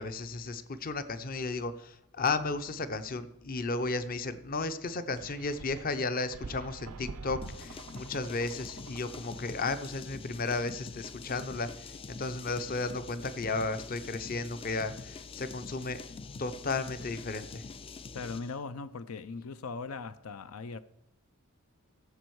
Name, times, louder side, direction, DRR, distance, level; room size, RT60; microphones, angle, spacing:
voice 1, 0.0-16.0 16.4-17.6, left 3 dB, 40° left, 0.7 m, -34 dB
sound 1, 5.2-9.7, right 4 dB, 90° right, 0.5 m, -46 dB
sound 2, 7.4-18.6, left 4 dB, 25° left, 0.3 m, -45 dB
voice 2, 18.1-20.8, left 4 dB, 85° left, 0.5 m, -39 dB
16.0 x 7.0 x 4.7 m
head